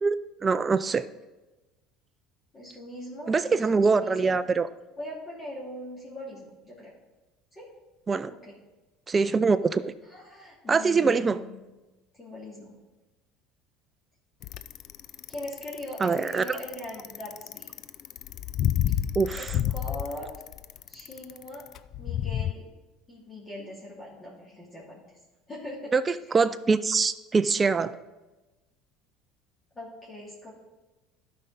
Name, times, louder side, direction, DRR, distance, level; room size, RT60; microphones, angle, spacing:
voice 1, 0.0-1.1 3.3-4.7 8.1-8.3 9.1-9.9 10.7-11.4 16.0-16.6 19.2-19.5 25.9-28.0, right 4 dB, 25° right, 12 dB, 0.4 m, -24 dB
voice 2, 2.5-3.3 3.7-4.3 5.0-6.9 7.5-7.7 8.4-8.5 10.1-11.5 12.1-12.8 15.3-17.7 19.3-19.5 19.7-20.3 20.9-21.6 22.0-22.7 23.1-25.0 25.5-25.9 26.2-26.4 29.7-30.5, left 1 dB, 25° left, -6 dB, 2.6 m, -40 dB
Bicycle, 14.4-22.5, left 11 dB, 55° left, 0.4 m, -30 dB
12.0 x 5.3 x 4.2 m, 1.1 s
supercardioid pair, 85°, 0 cm